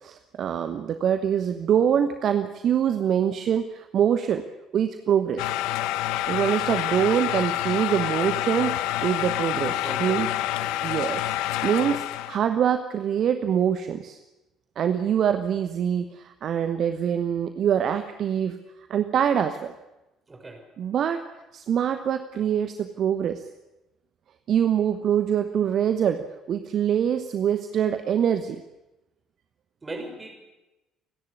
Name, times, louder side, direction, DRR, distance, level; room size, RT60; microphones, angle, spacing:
voice 1, 0.0-4.4 4.7-5.5 6.3-10.3 10.8-11.3 11.6-14.2 14.8-18.6 18.9-19.7 20.8-21.2 21.5-23.4 24.5-28.6, right 9 dB, 45° right, 9 dB, 1.0 m, -24 dB
sound 1, 5.4-12.4, left 13 dB, 60° left, 0.7 m, -27 dB
voice 2, 9.7-10.2 10.5-10.8 20.3-20.6 29.8-30.3, right 2 dB, 20° right, 2 dB, 6.2 m, -38 dB
29.0 x 11.0 x 9.8 m, 1.0 s
figure-of-eight pair, 55°, 0 cm